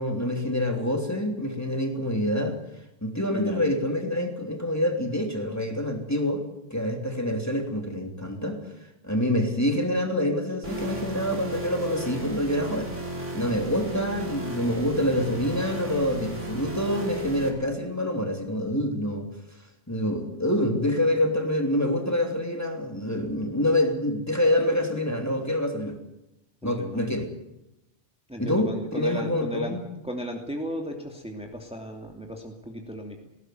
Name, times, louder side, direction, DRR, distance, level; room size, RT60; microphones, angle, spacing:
voice 1, 0.0-2.6 3.0-6.4 6.7-8.6 9.0-12.9 13.3-19.2 19.9-25.9 26.6-27.3 28.4-29.8, left 1 dB, 15° left, 3 dB, 3.2 m, -26 dB
voice 2, 3.3-3.7 26.8-27.0 28.3-29.8 30.0-33.3, equal, 5° right, 2 dB, 2.8 m, -36 dB
sound 1, 10.6-17.5, right 1 dB, 80° right, 5.0 m, -34 dB
20.0 x 17.5 x 9.4 m, 0.88 s
omnidirectional pair, 1.2 m